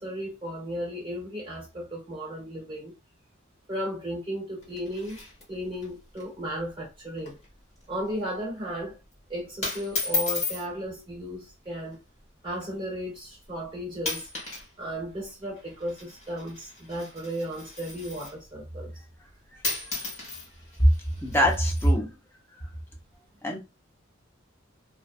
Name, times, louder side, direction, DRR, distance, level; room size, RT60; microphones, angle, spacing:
voice 1, 0.0-2.9 3.7-5.2 5.5-7.4 7.9-9.0 9.3-12.0 12.4-14.2 14.8-18.9, equal, 25° right, 1.0 m, -35 dB
sound 1, 4.6-5.9 6.2-6.3 6.6-6.8 7.2-7.5 7.8-8.1 8.9-9.1 9.6-10.7 11.7-11.9 12.6-12.7 13.4-13.6 14.0-14.7 14.9-18.5 19.3-19.4 19.6-21.9, left 3 dB, 30° left, 0.9 m, -34 dB
voice 2, 21.2-22.1 23.4-23.6, equal, 10° left, 0.4 m, -23 dB
2.5 x 2.1 x 2.4 m
head